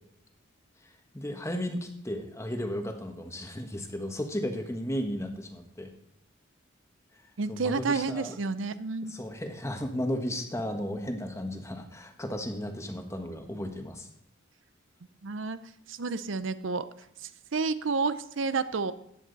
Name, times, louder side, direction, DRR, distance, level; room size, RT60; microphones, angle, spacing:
voice 1, 0.8-5.9 7.5-8.4 9.0-14.1, equal, 15° left, 5 dB, 1.3 m, -34 dB
voice 2, 7.4-9.2 15.2-15.6 15.9-16.9 17.2-18.9, right 4 dB, 70° right, 13 dB, 0.6 m, -30 dB
14.5 x 10.0 x 4.0 m, 0.78 s
head